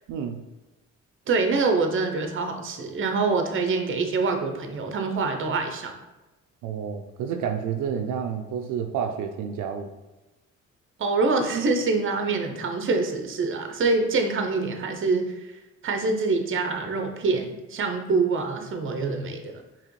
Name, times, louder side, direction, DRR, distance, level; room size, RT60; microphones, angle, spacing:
voice 1, 0.1-0.4 6.6-9.9, right 7 dB, 85° right, 4 dB, 0.5 m, -30 dB
voice 2, 1.3-5.9 11.0-15.5 15.8-19.6, right 3 dB, 45° right, 5 dB, 0.7 m, -25 dB
4.8 x 3.0 x 3.2 m, 1.1 s
cardioid pair, 90°, 30 cm